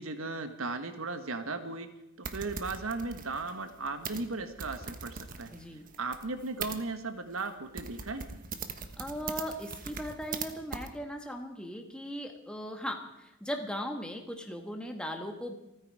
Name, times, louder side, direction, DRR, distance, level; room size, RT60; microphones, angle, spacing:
voice 1, 0.0-1.9 2.2-5.5 6.0-8.2, right 3 dB, 85° right, 8 dB, 1.4 m, -36 dB
sound 1, 2.2-6.8 7.4-7.5 7.8-10.5 10.7-10.9, right 5 dB, 40° right, 1.2 m, -41 dB
voice 2, 5.5-5.9 9.0-15.5, equal, 5° left, 3 dB, 1.6 m, -38 dB
27.0 x 9.6 x 4.9 m, 0.91 s
head